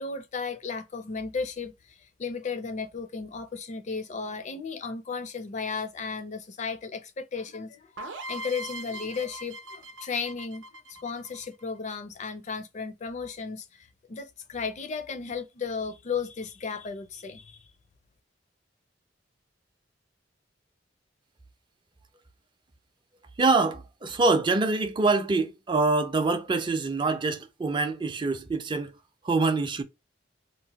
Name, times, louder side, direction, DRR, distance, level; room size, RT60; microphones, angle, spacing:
voice 1, 0.0-17.7, left 5 dB, 40° left, 0.4 m, -35 dB
sound 1, 8.0-11.7, right 1 dB, 80° right, 0.7 m, -40 dB
voice 2, 23.4-28.9 29.2-29.8, right 3 dB, 25° right, 0.4 m, -25 dB
2.9 x 2.1 x 2.8 m
head